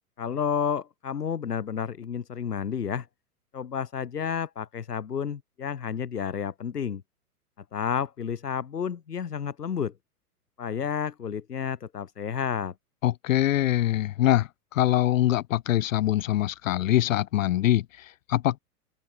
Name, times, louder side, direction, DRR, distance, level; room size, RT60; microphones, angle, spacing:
voice 1, 0.2-3.1 3.5-7.0 7.7-9.9 10.6-12.7, left 7 dB, 85° left, 1.1 m, -31 dB
voice 2, 13.0-18.6, left 13 dB, 60° left, 0.7 m, -24 dB
open air
figure-of-eight pair, 105°, 46 cm